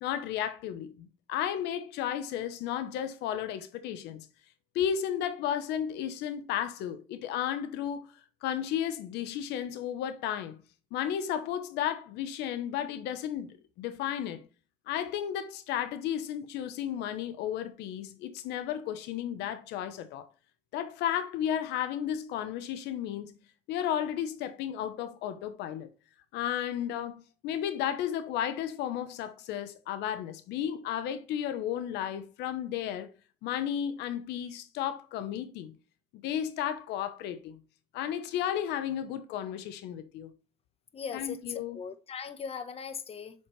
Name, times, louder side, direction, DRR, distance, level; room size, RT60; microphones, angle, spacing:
voice 1, 0.0-4.3 4.7-8.1 8.4-10.6 10.9-14.4 14.9-20.3 20.7-23.4 23.7-25.9 26.3-33.1 33.4-35.7 36.1-37.6 37.9-40.3 41.1-41.8, left 10 dB, 85° left, 0.8 m, -33 dB
voice 2, 40.9-41.4 41.7-43.3, left 6 dB, 35° left, 1.0 m, -39 dB
7.4 x 5.9 x 3.1 m
cardioid pair, 110°, 17 cm